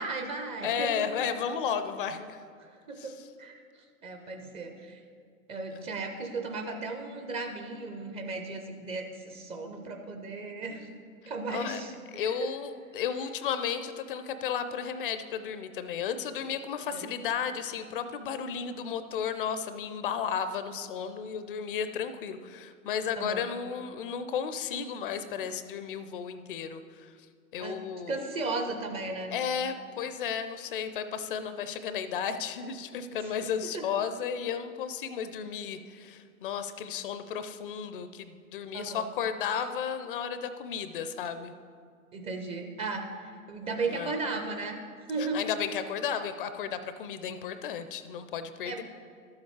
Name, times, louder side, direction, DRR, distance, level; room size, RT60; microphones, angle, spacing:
voice 1, 0.0-1.0 2.6-5.0 5.5-10.9 11.3-12.5 13.2-13.3 16.9-17.1 23.2-23.4 27.6-27.8 28.1-29.3 33.1-33.4 33.7-33.8 38.7-39.1 39.6-39.7 42.1-44.8 45.1-45.4 48.6-48.8, right 3 dB, 15° right, 4 dB, 0.5 m, -36 dB
voice 2, 0.6-2.4 3.0-3.1 5.7-5.9 11.5-11.8 12.1-27.1 27.5-28.2 29.3-41.5 43.9-44.1 45.3-48.8, left 7 dB, 40° left, 11 dB, 0.5 m, -33 dB
12.5 x 7.2 x 4.7 m, 2.2 s
figure-of-eight pair, 100°, 43 cm